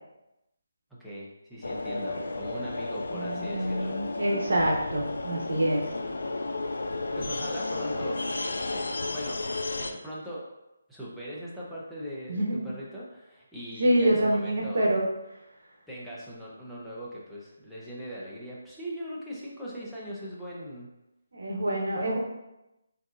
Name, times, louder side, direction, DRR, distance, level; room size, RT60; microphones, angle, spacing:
voice 1, 1.0-4.0 7.1-9.4 9.8-10.5 10.9-14.8 15.9-20.9 21.9-22.2, equal, ahead, -9 dB, 0.6 m, -40 dB
sound 1, 1.6-9.9, left 2 dB, 80° left, 0.3 m, -33 dB
voice 2, 3.1-5.9 12.3-12.7 13.8-15.1 21.3-22.2, right 1 dB, 70° right, -1 dB, 0.9 m, -26 dB
3.6 x 2.7 x 2.4 m, 0.93 s
figure-of-eight pair, 160°, 0 cm